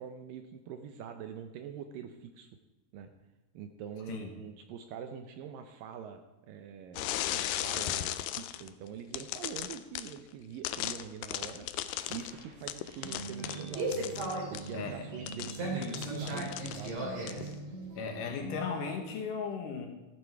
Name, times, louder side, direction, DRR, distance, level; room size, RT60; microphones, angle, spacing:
voice 1, 0.0-2.5 2.9-3.1 3.5-11.7 12.1-13.9 14.5-17.0, right 8 dB, 75° right, 7 dB, 2.1 m, -44 dB
sound 1, 7.0-8.7 9.1-10.2 10.6-14.7 15.3-17.0 17.3-17.5, left 13 dB, 90° left, 1.9 m, -36 dB
sound 2, 11.8-18.6, right 2 dB, 50° right, 3.7 m, -38 dB
voice 2, 14.7-15.0 18.0-19.9, left 5 dB, 70° left, 3 dB, 2.4 m, -36 dB
14.5 x 8.4 x 4.6 m, 1.1 s
omnidirectional pair, 4.5 m